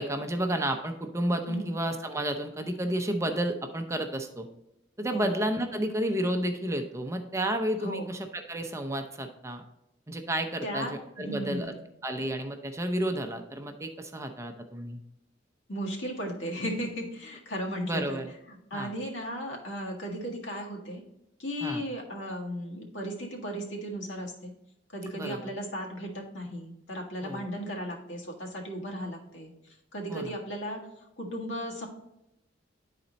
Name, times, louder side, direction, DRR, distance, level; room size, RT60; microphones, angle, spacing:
voice 1, 0.0-4.5 5.0-9.6 10.1-11.7 12.0-15.0 17.9-18.3 18.7-18.9 21.6-21.8 25.1-25.4 27.2-27.5 30.1-30.3, right 1 dB, 15° right, 6 dB, 0.6 m, -31 dB
voice 2, 10.6-11.0 11.2-11.8 15.7-18.2 18.7-21.0 21.4-24.5 24.9-29.5 29.9-30.8 31.2-31.9, equal, 80° left, -1 dB, 1.8 m, -35 dB
10.0 x 4.2 x 4.0 m, 0.85 s
head